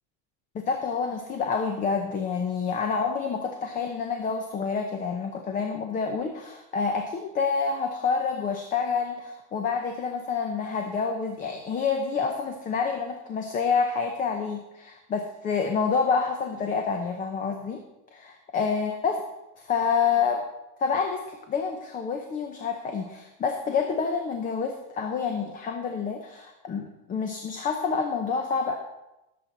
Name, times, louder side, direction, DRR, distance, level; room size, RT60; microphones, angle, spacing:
voice 1, 0.5-17.8 18.1-19.2 19.6-20.4 20.8-28.7, left 5 dB, 20° left, 5 dB, 0.8 m, -28 dB
18.0 x 7.7 x 4.0 m, 0.93 s
supercardioid pair, 155°, 38 cm